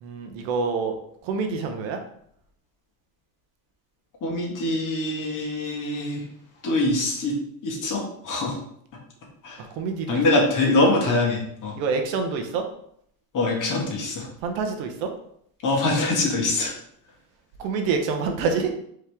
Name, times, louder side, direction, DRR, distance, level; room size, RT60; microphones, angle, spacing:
voice 1, 0.0-0.9 1.2-2.0 9.6-10.4 11.8-12.6 14.4-15.1 17.6-18.7, right 5 dB, 75° right, 5 dB, 0.9 m, -27 dB
voice 2, 4.2-6.2 6.6-7.4 7.6-8.6 9.4-9.6 10.1-11.7 13.3-14.3 15.6-16.7, left 2 dB, 40° left, -1 dB, 1.5 m, -24 dB
4.8 x 3.2 x 3.4 m, 0.69 s
supercardioid pair, 115°, 47 cm